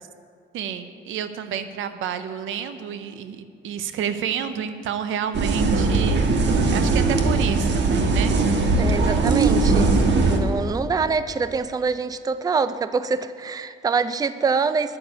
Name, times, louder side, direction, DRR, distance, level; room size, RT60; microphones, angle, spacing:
voice 1, 0.5-6.2 6.7-8.3 9.2-9.4, right 8 dB, 85° right, 10 dB, 0.7 m, -30 dB
sound 1, 5.3-10.4, right 3 dB, 65° right, 1.4 m, -19 dB
voice 2, 8.8-9.9 10.3-15.0, right 5 dB, 20° right, 13 dB, 0.4 m, -25 dB
10.5 x 7.1 x 8.2 m, 2.2 s
cardioid pair, 90°, 20 cm